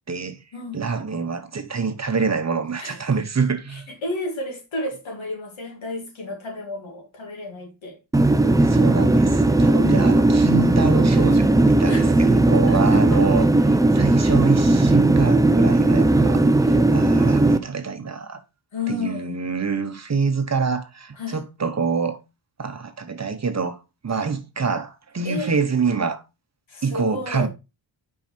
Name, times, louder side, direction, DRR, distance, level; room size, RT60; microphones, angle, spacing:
voice 1, 0.1-0.4 0.7-3.9 8.6-18.4 18.9-22.2 22.6-23.8 24.0-26.2 26.8-27.5, right 5 dB, 35° right, 0.8 m, -26 dB
voice 2, 3.7-8.0 9.8-10.1 11.8-12.1 12.7-13.2 16.3-16.7 18.7-19.3 21.2-21.4 24.1-24.3 25.2-25.5 26.7-27.5, left 2 dB, 85° left, 2.6 m, -32 dB
sound 1, 8.1-17.6, right 2 dB, 10° right, 0.3 m, -17 dB
6.0 x 4.8 x 4.2 m
wide cardioid pair, 150°, 46 cm